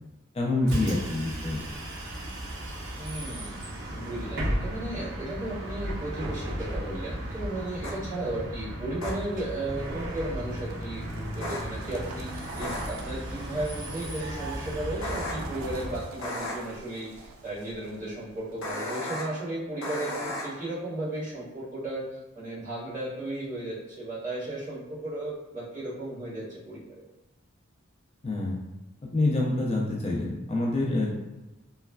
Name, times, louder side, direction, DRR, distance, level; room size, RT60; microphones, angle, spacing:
voice 1, 0.3-1.6 28.2-28.5 29.0-31.2, left 2 dB, 30° left, -3 dB, 0.4 m, -27 dB
Bus, 0.6-16.0, equal, 60° right, 0.9 m, -35 dB
voice 2, 3.0-3.6 3.9-27.0, right 1 dB, 40° right, -10 dB, 1.3 m, -35 dB
sound 1, 7.8-7.9 9.0-9.1 11.4-11.6 12.6-12.8 15.0-15.3 16.2-16.5 18.6-19.2 19.8-20.4, left 1 dB, 80° left, 0.7 m, -33 dB
sound 2, 9.8-18.7, right 3 dB, 85° right, 0.4 m, -48 dB
3.1 x 2.2 x 2.3 m, 1.1 s
head